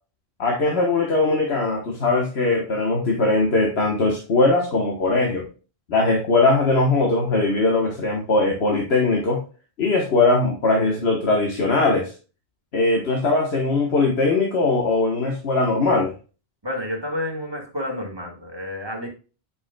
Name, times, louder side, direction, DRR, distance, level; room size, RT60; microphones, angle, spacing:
voice 1, 0.4-5.5 5.9-9.4 9.8-12.1 12.7-16.1, left 3 dB, 80° left, 0 dB, 1.4 m, -20 dB
voice 2, 16.6-19.1, left 1 dB, 25° right, 1 dB, 1.7 m, -30 dB
8.6 x 5.5 x 2.2 m, 0.34 s
omnidirectional pair, 1.1 m